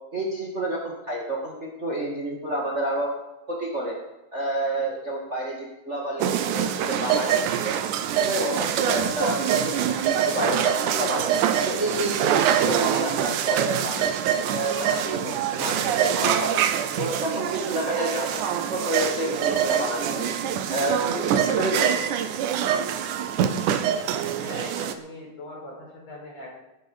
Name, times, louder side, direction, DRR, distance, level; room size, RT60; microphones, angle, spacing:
voice 1, 0.1-3.1 3.5-4.0 4.3-7.3 7.6-7.7 8.2-11.3 11.6-14.1 14.5-16.5 17.0-20.3 20.7-21.9, right 1 dB, 25° right, -2 dB, 2.2 m, -29 dB
sound 1, 6.2-24.9, right 9 dB, 90° right, 2.4 m, -25 dB
voice 2, 24.1-26.6, left 1 dB, 55° left, -3 dB, 5.9 m, -40 dB
18.5 x 9.7 x 5.1 m, 0.99 s
omnidirectional pair, 3.5 m